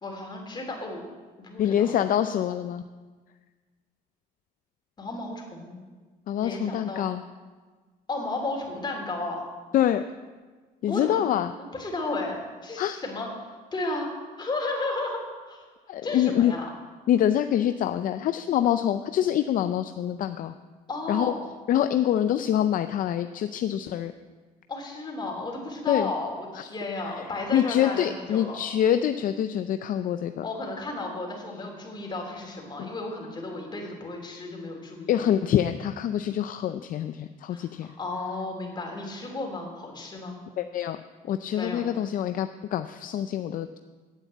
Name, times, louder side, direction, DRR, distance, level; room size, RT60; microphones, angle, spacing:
voice 1, 0.0-1.0 1.4-1.9 5.0-5.7 6.4-7.1 8.1-9.4 10.9-11.2 11.6-13.3 13.7-14.1 14.4-15.2 15.5-15.7 16.0-16.7 20.9-21.5 24.7-28.6 30.4-35.2 37.5-37.6 38.0-40.4 41.5-41.8, left 2 dB, 25° left, 0 dB, 3.4 m, -33 dB
voice 2, 1.6-2.8 6.3-7.2 9.7-10.0 10.8-11.5 12.8-13.0 15.9-16.5 17.1-20.5 21.1-21.3 21.7-24.1 25.9-26.1 26.6-26.7 27.5-30.4 32.8-32.9 35.1-37.9 40.6-41.0 41.3-43.8, left 10 dB, 55° left, 9 dB, 0.5 m, -25 dB
9.4 x 8.8 x 8.4 m, 1.4 s
cardioid pair, 110°, 17 cm